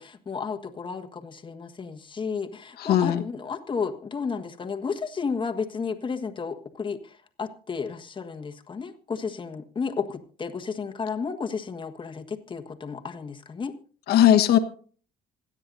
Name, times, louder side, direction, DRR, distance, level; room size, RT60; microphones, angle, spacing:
voice 1, 0.0-13.7, left 5 dB, 30° left, 6 dB, 1.5 m, -32 dB
voice 2, 2.8-3.2 14.1-14.6, left 11 dB, 65° left, 6 dB, 1.4 m, -18 dB
27.0 x 9.9 x 2.7 m, 0.43 s
cardioid pair, 100°, 17 cm